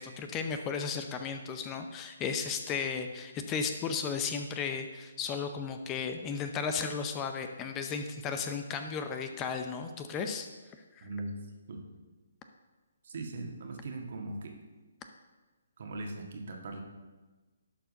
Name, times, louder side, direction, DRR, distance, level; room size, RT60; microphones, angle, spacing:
voice 1, 0.0-10.5 11.0-11.1, left 5 dB, 20° left, 6 dB, 0.6 m, -34 dB
voice 2, 11.0-11.3 11.7-11.8 13.0-14.5 15.8-16.8, right 2 dB, 55° right, 2 dB, 1.7 m, -39 dB
11.5 x 4.5 x 5.4 m, 1.2 s
figure-of-eight pair, 140°, 0 cm